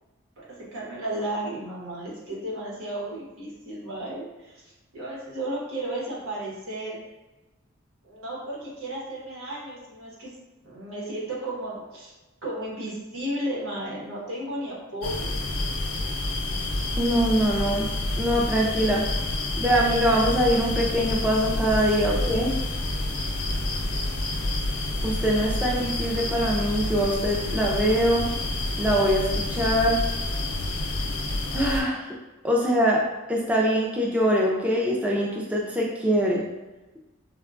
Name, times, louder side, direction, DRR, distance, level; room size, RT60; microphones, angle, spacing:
voice 1, 0.4-4.6 4.9-7.0 8.0-10.3 10.6-12.1 12.4-15.4 23.4-23.9, right 1 dB, 85° right, -5 dB, 1.0 m, -34 dB
sound 1, 15.0-31.8, left 2 dB, 85° left, 0.5 m, -28 dB
voice 2, 17.0-17.9 18.2-19.0 19.6-22.5 25.0-28.3 28.8-30.0 31.5-32.1 32.4-33.0 33.3-36.5, equal, 5° right, -4 dB, 0.4 m, -23 dB
3.6 x 2.2 x 2.4 m, 1.1 s
head